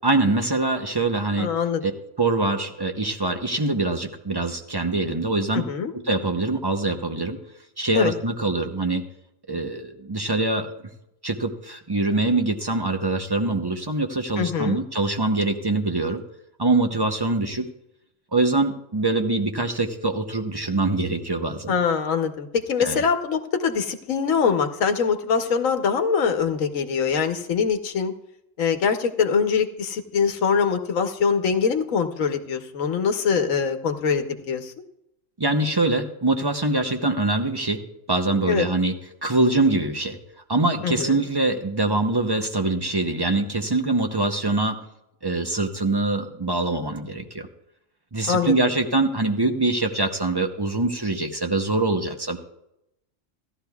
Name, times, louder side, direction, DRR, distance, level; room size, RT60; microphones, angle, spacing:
voice 1, 0.0-1.5 1.8-1.9 2.2-5.6 5.9-7.4 7.8-9.0 9.5-10.7 11.2-16.2 16.6-17.7 18.3-21.8 22.8-23.0 35.4-37.8 38.1-38.9 39.2-40.2 40.5-44.8 45.2-47.5 48.1-52.4, right 2 dB, 25° right, 5 dB, 0.6 m, -24 dB
voice 2, 1.4-1.8 5.5-5.9 7.9-8.1 14.4-14.8 21.7-28.1 28.6-34.7 38.5-38.7 40.8-41.2 48.3-48.5, left 6 dB, 90° left, 7 dB, 1.3 m, -23 dB
16.5 x 12.0 x 2.3 m, 0.83 s
omnidirectional pair, 1.3 m